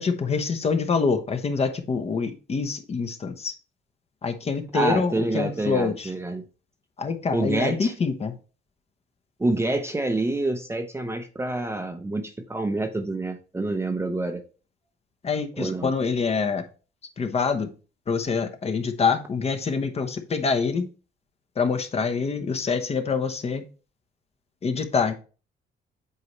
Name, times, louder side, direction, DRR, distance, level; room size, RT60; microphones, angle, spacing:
voice 1, 0.0-3.5 4.2-6.1 7.0-8.4 15.2-16.6 17.2-17.7 18.1-20.9 21.6-23.6 24.6-25.1, left 5 dB, 30° left, 7 dB, 0.9 m, -25 dB
voice 2, 4.7-6.4 7.3-7.9 9.4-14.4 15.6-15.9, right 2 dB, 15° right, 6 dB, 0.7 m, -27 dB
8.1 x 4.7 x 3.1 m, 0.35 s
cardioid pair, 140°, 19 cm